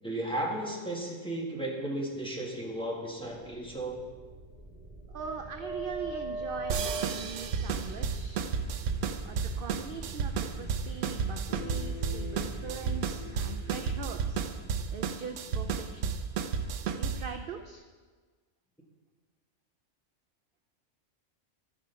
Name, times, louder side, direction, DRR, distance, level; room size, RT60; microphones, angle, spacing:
voice 1, 0.0-4.0, right 1 dB, 5° left, -3 dB, 1.5 m, -34 dB
sound 1, 3.2-16.8, right 1 dB, 35° right, 2.1 m, -42 dB
voice 2, 5.1-8.5 9.3-14.4 14.9-16.1 16.9-17.8, right 6 dB, 60° right, 6 dB, 0.6 m, -42 dB
sound 2, 6.7-17.4, right 6 dB, 75° right, 1.0 m, -32 dB
13.5 x 5.1 x 5.6 m, 1.4 s
omnidirectional pair, 1.3 m